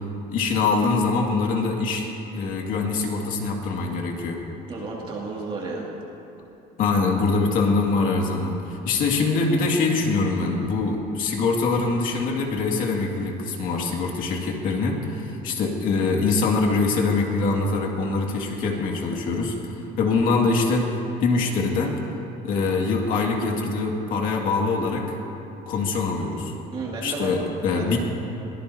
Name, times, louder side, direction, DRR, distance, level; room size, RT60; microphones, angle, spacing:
voice 1, 0.3-2.1 2.3-4.4 6.8-20.9 21.2-22.0 22.4-25.1 25.7-26.5 27.0-28.0, left 3 dB, 50° left, 0 dB, 2.2 m, -23 dB
voice 2, 4.7-5.9 26.7-27.4 27.7-28.0, right 3 dB, 30° right, -3 dB, 2.4 m, -32 dB
22.5 x 18.5 x 2.8 m, 2.9 s
cardioid pair, 170°, 18 cm